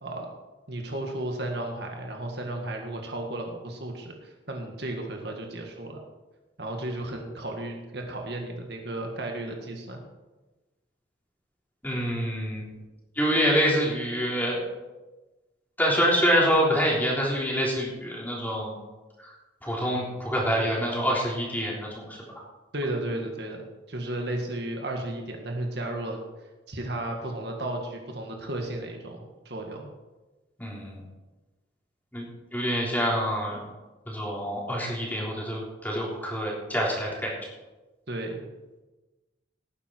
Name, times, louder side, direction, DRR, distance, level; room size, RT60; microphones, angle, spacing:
voice 1, 0.7-6.0 6.6-10.0 22.7-23.6 23.9-26.2 26.7-29.9 38.1-38.4, right 1 dB, 55° right, 2 dB, 1.9 m, -34 dB
voice 2, 11.8-12.7 13.1-14.6 15.8-18.7 19.2-19.3 19.6-22.2 30.6-31.0 32.1-33.6 34.0-37.3, equal, 10° left, -3 dB, 3.5 m, -26 dB
18.0 x 9.7 x 4.6 m, 1.1 s
head